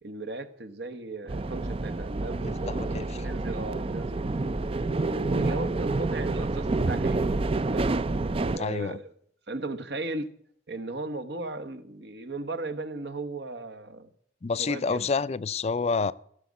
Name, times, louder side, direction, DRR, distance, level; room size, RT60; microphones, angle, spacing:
voice 1, 0.0-4.5 4.9-7.2 7.7-7.9 8.5-9.1 9.5-10.3 10.7-14.1 14.6-15.1, right 2 dB, 65° right, 1.1 m, -36 dB
sound 1, 1.3-8.6, right 3 dB, 30° right, 0.5 m, -28 dB
voice 2, 2.7-3.1 8.6-9.0 14.4-16.1, left 4 dB, 35° left, 0.4 m, -28 dB
16.0 x 6.3 x 8.3 m
head